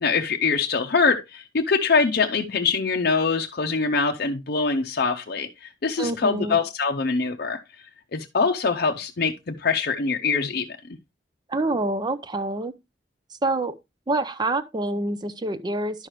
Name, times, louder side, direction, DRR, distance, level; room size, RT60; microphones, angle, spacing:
voice 1, 0.0-7.6 8.1-10.7, left 4 dB, 55° left, 0.6 m, -23 dB
voice 2, 6.0-6.6 11.5-12.7 13.4-13.7 14.1-16.1, right 2 dB, 25° right, 0.5 m, -26 dB
11.0 x 6.4 x 3.0 m
head